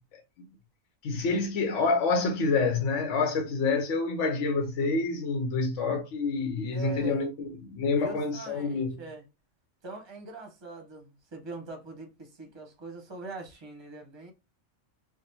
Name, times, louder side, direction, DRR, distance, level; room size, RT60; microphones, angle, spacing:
voice 1, 1.0-9.0, left 4 dB, 70° left, 1.0 m, -27 dB
voice 2, 6.7-7.3 8.0-9.2 9.8-14.3, right 3 dB, 25° right, 0.7 m, -42 dB
3.4 x 2.1 x 2.6 m
omnidirectional pair, 1.4 m